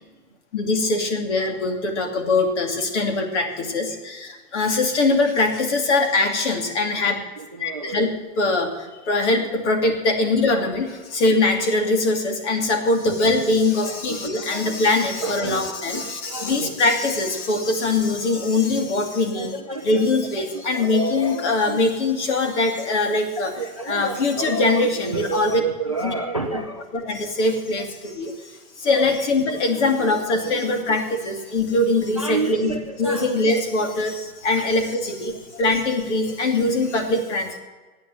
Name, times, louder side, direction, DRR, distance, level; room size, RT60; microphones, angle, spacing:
voice 1, 0.5-7.2 7.6-8.1 8.4-8.7 9.0-19.5 19.8-23.5 23.9-25.6 26.0-26.1 26.5-26.6 26.9-28.3 28.8-32.7 33.0-37.6, left 2 dB, 50° left, 5 dB, 2.7 m, -22 dB
voice 2, 7.4-8.1 9.1-9.3 10.2-10.6 13.0-13.1 13.9-14.8 15.2-16.8 19.3-20.1 20.4-21.8 23.1-26.9 28.8-29.1 29.6-29.7 30.5-30.7 32.1-33.3 33.9-34.0 34.6-34.7 35.2-35.6 36.3-36.4, right 3 dB, 25° right, 7 dB, 0.3 m, -31 dB
13.0 x 9.6 x 7.7 m, 1.3 s
hypercardioid pair, 160°, 46 cm